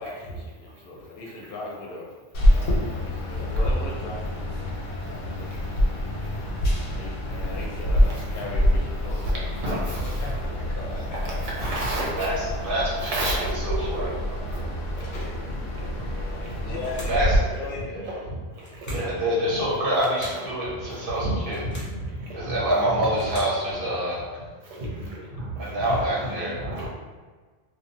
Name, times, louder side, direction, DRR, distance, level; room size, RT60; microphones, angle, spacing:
voice 1, 0.0-2.1 2.5-6.5 6.9-11.3 14.5-14.6 15.0-15.4 16.6-17.9 22.5-23.1, left 3 dB, 60° left, -3 dB, 0.7 m, -39 dB
sound 1, 2.3-17.4, equal, 90° left, 1.0 m, -26 dB
voice 2, 4.9-5.8 6.2-6.4 7.2-7.5 8.0-8.4 9.1-10.4 11.2-12.3 13.0-13.5 14.4-16.9 17.2-19.6 20.3-23.1 24.4-26.9, right 1 dB, 85° right, -4 dB, 1.0 m, -34 dB
voice 3, 12.6-14.2 17.1-17.5 17.9-18.1 18.9-21.6 22.3-24.2 25.6-26.5, right 1 dB, 55° right, -6 dB, 0.8 m, -26 dB
sound 2, 16.8-17.3 18.6-19.2 20.0-20.5 21.4-22.0 22.9-23.6, equal, 25° left, 0.4 m, -43 dB
2.6 x 2.2 x 2.5 m, 1.4 s
omnidirectional pair, 1.2 m